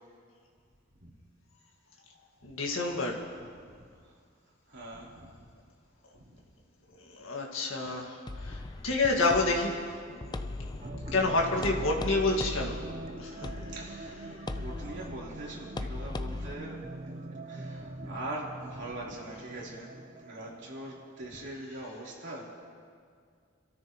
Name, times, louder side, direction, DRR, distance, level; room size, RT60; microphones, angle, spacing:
voice 1, 2.4-3.2 7.0-9.8 10.1-12.8 13.2-13.5, left 2 dB, 75° left, 0 dB, 2.0 m, -29 dB
voice 2, 4.7-5.4 6.2-6.3 8.6-8.7 11.5-11.7 13.7-14.2 14.5-16.8 17.5-22.4, right 1 dB, 60° right, -5 dB, 3.8 m, -42 dB
sound 1, 8.3-16.5, left 2 dB, 20° left, 0.4 m, -39 dB
sound 2, 10.8-21.4, right 2 dB, 35° right, 0.7 m, -44 dB
29.0 x 13.0 x 3.1 m, 2.1 s
head